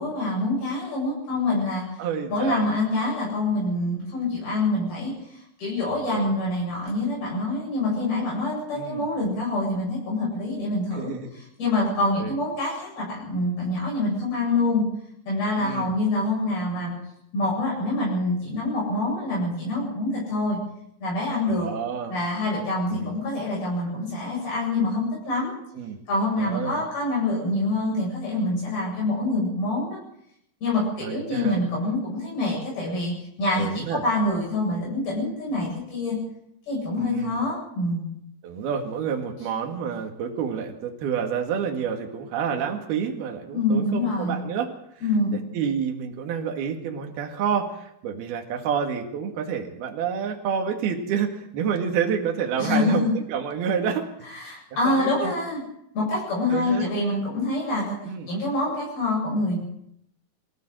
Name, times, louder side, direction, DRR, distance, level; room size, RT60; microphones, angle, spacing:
voice 1, 0.0-1.9 2.3-14.8 15.3-16.9 17.3-20.6 21.0-21.7 22.1-25.5 26.1-30.0 30.6-36.2 36.7-38.1 43.5-44.4 45.0-45.4 52.6-53.1 54.3-55.6 55.9-58.0 58.3-59.6, left 2 dB, 65° left, -4 dB, 10.0 m, -26 dB
voice 2, 2.0-2.7 5.9-6.3 8.7-9.1 10.9-11.3 12.2-12.4 15.6-15.9 21.5-22.1 22.9-23.2 25.7-26.0 26.4-26.8 31.0-31.6 33.6-34.0 37.0-37.4 38.4-44.7 45.3-54.1 54.5-54.6 54.8-55.3 56.5-56.9 58.1-58.3, right 7 dB, 75° right, 3 dB, 3.9 m, -29 dB
24.0 x 16.0 x 7.8 m, 0.75 s
omnidirectional pair, 4.6 m